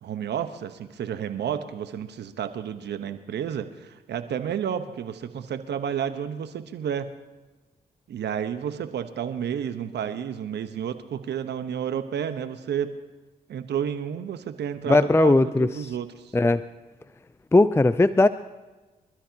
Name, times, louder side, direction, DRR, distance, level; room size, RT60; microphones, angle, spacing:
voice 1, 0.0-7.1 8.1-12.9 13.5-16.3, right 8 dB, 70° right, 10 dB, 1.0 m, -31 dB
voice 2, 14.9-15.7 16.3-16.6 17.5-18.3, left 2 dB, 15° left, 15 dB, 0.5 m, -18 dB
25.5 x 13.0 x 2.9 m, 1.2 s
hypercardioid pair, 40°, 19 cm